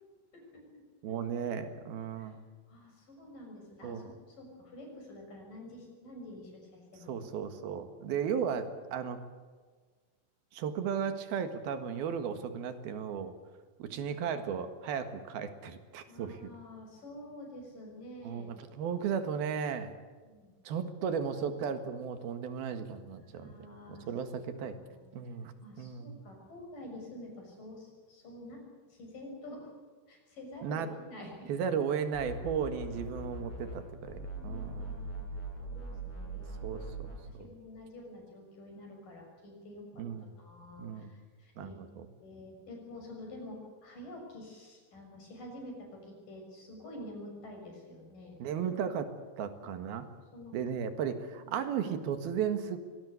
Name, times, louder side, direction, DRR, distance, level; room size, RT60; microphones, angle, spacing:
voice 1, 0.3-0.6 2.2-2.3 2.7-7.2 13.8-14.0 16.1-18.9 20.2-20.5 23.2-24.1 24.7-24.8 25.3-25.4 25.6-28.6 28.9-29.7 30.1-31.5 34.2-35.3 35.6-36.8 37.1-48.4 50.3-50.6 51.4-51.6, left 1 dB, 60° left, 2 dB, 8.1 m, -48 dB
voice 2, 1.0-2.4 3.8-4.1 7.1-9.2 10.5-13.3 13.8-16.5 18.2-19.9 20.7-23.5 23.9-24.8 25.1-26.2 30.6-30.9 31.5-35.1 36.6-37.5 40.0-40.3 40.8-41.1 41.6-42.1 48.4-50.1 50.5-52.8, right 7 dB, 85° right, 9 dB, 3.6 m, -35 dB
sound 1, 32.1-33.8 34.1-37.2, right 2 dB, 30° left, 7.9 m, -41 dB
24.5 x 18.5 x 8.2 m, 1.4 s
omnidirectional pair, 4.2 m